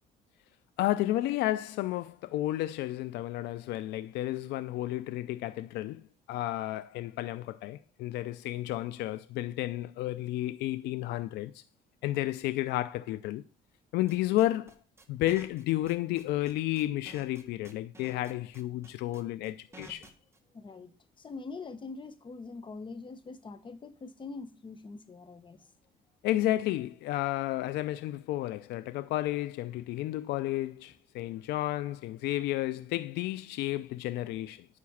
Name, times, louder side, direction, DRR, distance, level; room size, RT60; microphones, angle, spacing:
voice 1, 0.8-6.0 6.3-11.6 12.0-13.4 13.9-14.7 15.1-20.1 26.2-34.7, left 15 dB, 80° left, 0.4 m, -32 dB
sound 1, 14.1-20.4, right 2 dB, 15° right, 1.5 m, -51 dB
voice 2, 20.5-20.9 21.2-25.6, left 4 dB, 30° left, 1.0 m, -43 dB
9.5 x 4.2 x 7.1 m
cardioid pair, 110°, 17 cm